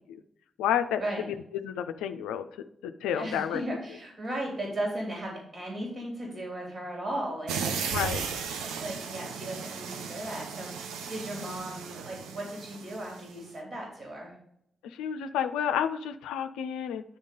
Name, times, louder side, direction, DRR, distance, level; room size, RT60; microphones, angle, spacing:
voice 1, 0.6-1.0 1.6-2.5 2.8-3.6 7.9-8.2 11.4-11.7 14.8-17.0, left 9 dB, 80° left, 8 dB, 0.4 m, -30 dB
voice 2, 3.1-8.0 8.6-14.3, right 1 dB, 50° right, -2 dB, 3.6 m, -36 dB
sound 1, 7.5-13.4, right 6 dB, 80° right, 0.7 m, -36 dB
10.5 x 3.6 x 5.5 m, 0.73 s
hypercardioid pair, 40°, 0 cm